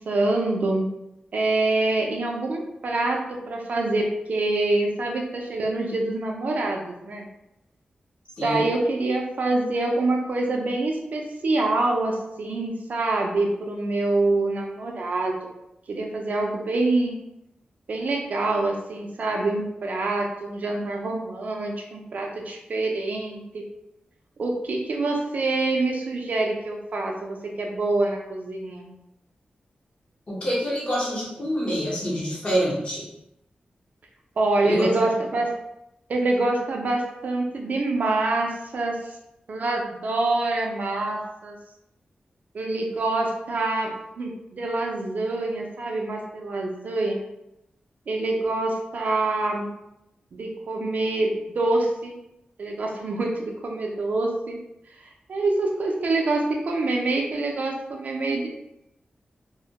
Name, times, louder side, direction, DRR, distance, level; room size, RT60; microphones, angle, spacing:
voice 1, 0.1-0.9 1.3-3.2 3.5-7.2 8.4-15.4 15.9-17.1 17.9-23.6 24.4-28.9 34.4-35.5 36.1-39.0 39.5-41.6 42.5-47.2 48.1-49.7 50.3-52.2 52.6-54.6 55.3-58.5, right 2 dB, 60° right, 1 dB, 0.4 m, -25 dB
voice 2, 8.4-8.7 30.3-33.1 34.6-34.8, equal, 40° left, -5 dB, 0.8 m, -26 dB
2.1 x 2.1 x 2.7 m, 0.86 s
wide cardioid pair, 130°, 3 cm